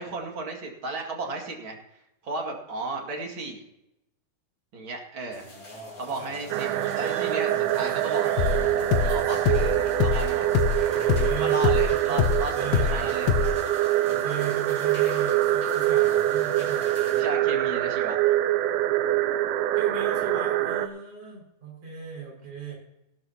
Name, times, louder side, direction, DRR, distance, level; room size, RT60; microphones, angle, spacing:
voice 1, 0.0-1.8 2.2-3.6 4.7-5.5 6.0-8.3 9.0-13.3 17.1-18.2, right 3 dB, 40° right, 1 dB, 2.8 m, -34 dB
voice 2, 5.2-7.0 7.5-9.3 9.6-10.3 10.7-11.7 12.1-13.6 14.0-17.2 19.8-22.8, right 5 dB, 65° right, -2 dB, 7.3 m, -39 dB
sound 1, 5.3-17.2, left 2 dB, 40° left, 5.3 m, -47 dB
sound 2, 6.5-20.9, right 13 dB, 85° right, 2.3 m, -25 dB
sound 3, 8.4-13.0 13.3-13.5, left 7 dB, 85° left, 2.6 m, -24 dB
18.0 x 12.5 x 2.9 m, 0.88 s
omnidirectional pair, 3.7 m